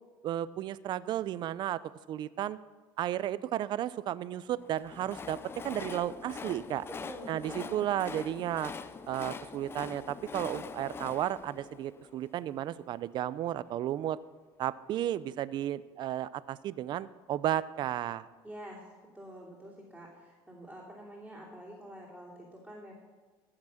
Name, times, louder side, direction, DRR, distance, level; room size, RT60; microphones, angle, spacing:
voice 1, 0.2-1.8 2.1-2.6 3.0-5.4 5.6-6.8 7.3-8.7 9.1-14.2 14.6-18.3, right 12 dB, 45° right, 17 dB, 0.5 m, -33 dB
Train, 4.6-12.7, left 5 dB, 25° left, 0.5 m, -43 dB
voice 2, 6.9-8.0 18.4-18.9 19.1-22.9, right 1 dB, ahead, -7 dB, 3.1 m, -47 dB
15.0 x 5.9 x 6.4 m, 1.5 s
cardioid pair, 120°, 10 cm